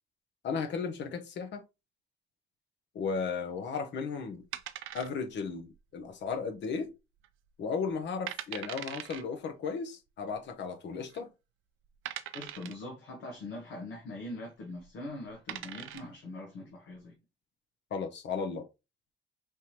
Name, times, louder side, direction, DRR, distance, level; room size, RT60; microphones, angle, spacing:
voice 1, 0.4-1.6 2.9-4.5 4.9-6.9 7.6-11.3 17.9-18.7, left 5 dB, 65° left, 0.9 m, -35 dB
sound 1, 4.5-5.5 5.7-5.8 6.5-6.9 7.2-7.3 7.9-8.0 8.3-9.2 10.3-10.4 11.1-11.2 12.1-12.9 14.7-14.9 15.3-16.2, right 12 dB, 85° right, 0.5 m, -41 dB
voice 2, 12.3-17.2, left 2 dB, 90° left, 1.2 m, -42 dB
4.6 x 3.4 x 2.8 m
cardioid pair, 90°, 20 cm